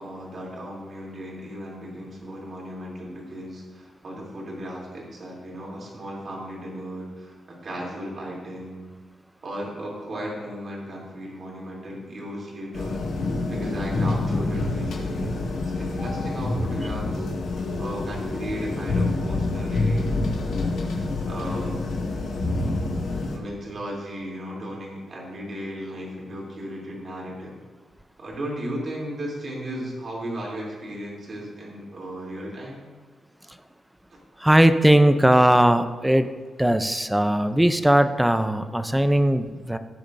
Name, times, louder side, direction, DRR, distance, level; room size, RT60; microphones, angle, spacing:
voice 1, 0.0-8.9 9.4-13.0 13.5-17.3 17.8-20.1 21.2-21.8 22.5-23.0 23.3-27.6 28.2-32.9, equal, 45° right, -3 dB, 2.9 m, -35 dB
sound 1, 12.7-23.4, left 2 dB, 75° left, 1.7 m, -27 dB
voice 2, 34.4-36.3 36.6-39.8, right 1 dB, 5° right, 9 dB, 0.4 m, -19 dB
17.0 x 7.1 x 2.6 m, 1.4 s
wide cardioid pair, 170°, 0 cm